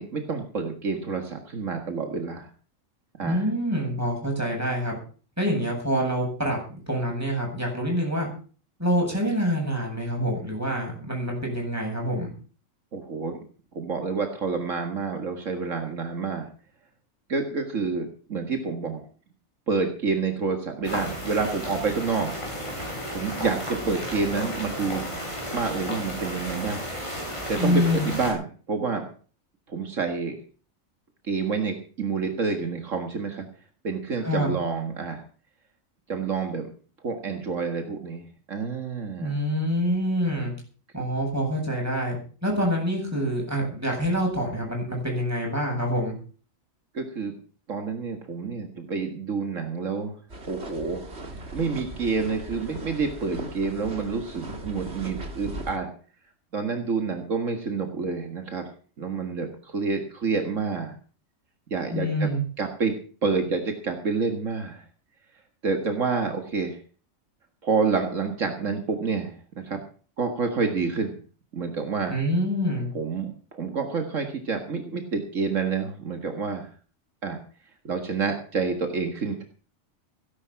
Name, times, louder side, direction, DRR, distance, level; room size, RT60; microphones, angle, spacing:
voice 1, 0.0-2.5 3.2-3.5 12.9-13.4 13.7-16.5 17.3-19.0 19.7-22.3 23.1-25.1 25.5-26.9 27.5-29.0 29.7-30.4 31.3-33.5 33.8-35.2 36.1-36.7 37.0-39.4 46.9-47.3 47.7-50.1 50.5-51.0 51.4-55.9 56.5-58.7 59.0-60.9 61.7-62.3 62.6-62.9 63.2-64.8 65.6-66.8 67.6-69.8 70.2-71.2 71.5-72.1 72.9-76.7 77.2-77.4 77.8-79.4, right 4 dB, 70° right, 5 dB, 2.1 m, -28 dB
voice 2, 3.2-5.0 5.4-8.3 8.8-12.3 27.6-28.1 34.2-34.5 39.2-40.5 40.9-46.2 61.9-62.4 72.1-72.9, equal, 10° right, -1 dB, 8.0 m, -26 dB
sound 1, 20.8-28.3, equal, 20° left, 6.7 m, -33 dB
sound 2, 50.3-55.8, right 2 dB, 50° right, 2.8 m, -38 dB
17.0 x 11.0 x 5.9 m, 0.41 s
omnidirectional pair, 1.4 m